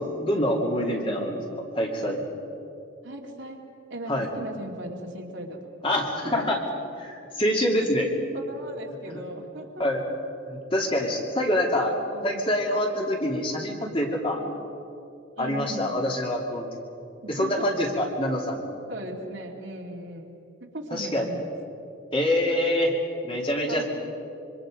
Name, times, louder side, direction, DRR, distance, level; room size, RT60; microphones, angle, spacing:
voice 1, 0.0-1.4 1.7-2.2 4.1-4.3 5.8-6.6 7.0-8.1 9.8-10.0 10.4-11.9 12.2-14.4 15.4-16.7 17.3-18.7 20.9-21.3 22.1-22.9 23.2-23.8, left 1 dB, 25° left, 0 dB, 2.7 m, -25 dB
voice 2, 0.8-1.4 3.0-3.6 3.9-5.7 6.4-6.5 8.3-9.8 11.6-12.7 14.3-14.6 15.4-16.0 17.2-17.7 18.9-20.4 20.6-21.4 23.7-23.8, right 1 dB, 60° right, 0 dB, 2.4 m, -38 dB
26.0 x 24.5 x 5.1 m, 2.7 s
head